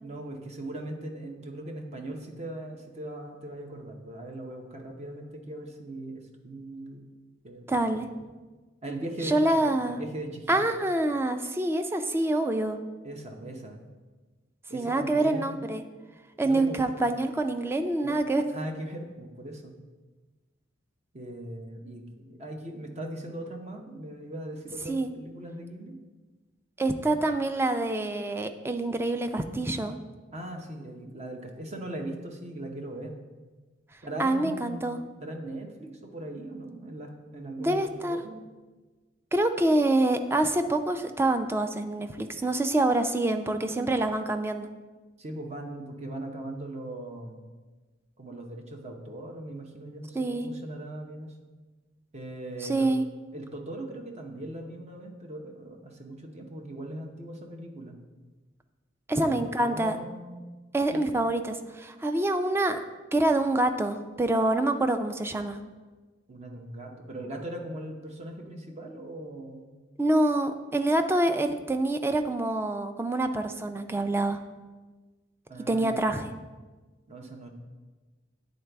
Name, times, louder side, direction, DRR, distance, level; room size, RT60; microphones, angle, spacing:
voice 1, 0.0-7.0 7.4-7.7 8.8-10.7 13.0-13.8 14.7-15.6 16.4-17.0 18.0-19.7 21.1-26.0 30.3-33.2 34.0-38.4 45.2-47.5 48.2-51.3 52.1-53.0 53.3-58.0 59.1-60.4 60.9-61.0 66.3-69.7 75.5-76.2 77.1-77.5, right 1 dB, 35° right, 3 dB, 0.7 m, -39 dB
voice 2, 7.7-8.1 9.2-10.0 10.5-12.8 14.7-15.8 16.4-18.4 24.9-25.1 26.8-30.0 34.2-35.0 37.6-38.2 39.3-44.7 50.1-50.5 52.6-53.0 59.1-59.9 60.7-62.8 63.1-65.6 70.0-74.4 75.7-76.3, right 2 dB, 10° right, 8 dB, 0.3 m, -26 dB
9.3 x 3.9 x 3.4 m, 1.3 s
head